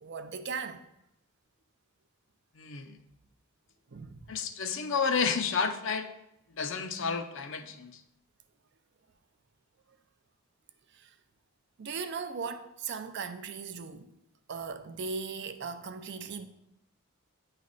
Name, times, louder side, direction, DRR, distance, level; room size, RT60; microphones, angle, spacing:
voice 1, 0.0-0.8 3.9-4.2 11.8-14.1 14.5-16.5, right 5 dB, 50° right, 0.5 m, -38 dB
voice 2, 2.6-3.0 4.3-6.1 6.6-8.0, left 5 dB, 55° left, 0.5 m, -31 dB
9.3 x 3.3 x 4.0 m
head